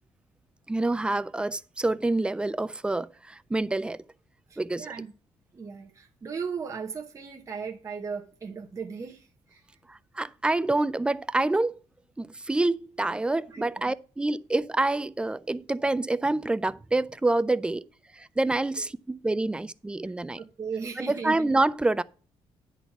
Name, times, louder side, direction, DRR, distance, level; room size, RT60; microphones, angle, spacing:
voice 1, 0.7-4.0 4.6-4.9 9.9-11.8 12.2-17.9 18.1-20.4 21.1-22.0, right 2 dB, 10° right, 0.3 m, -27 dB
voice 2, 4.5-5.1 5.5-9.6 13.5-13.8 20.0-21.4, right 6 dB, 25° right, 0.8 m, -37 dB
10.0 x 4.0 x 5.8 m
cardioid pair, 150°, 11 cm